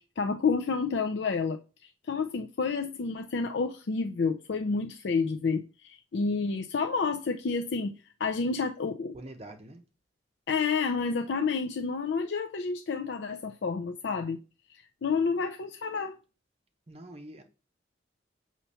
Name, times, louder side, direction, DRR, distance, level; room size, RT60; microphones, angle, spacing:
voice 1, 0.0-7.9 8.2-9.1 10.5-14.4 14.7-16.1, left 4 dB, 70° left, 0.4 m, -30 dB
voice 2, 9.1-9.8 16.9-17.4, right 1 dB, 35° right, 0.8 m, -45 dB
6.7 x 3.0 x 5.5 m
head